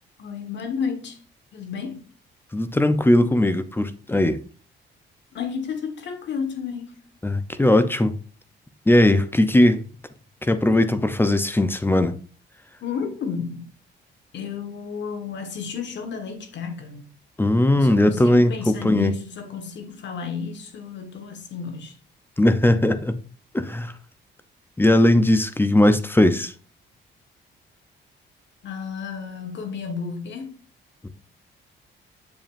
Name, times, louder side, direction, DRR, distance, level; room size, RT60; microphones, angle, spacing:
voice 1, 0.2-1.2 1.5-2.0 5.3-7.1 12.8-13.7 14.3-17.0 17.8-21.9 28.6-30.6, left 6 dB, 65° left, 1.5 m, -32 dB
voice 2, 2.5-4.4 7.2-8.2 8.9-9.8 10.5-12.2 17.4-18.5 18.8-19.1 22.4-23.2 23.5-23.9 24.8-26.5 31.0-31.1, left 1 dB, 10° left, 0.7 m, -19 dB
7.5 x 7.1 x 2.6 m
cardioid pair, 90°, 20 cm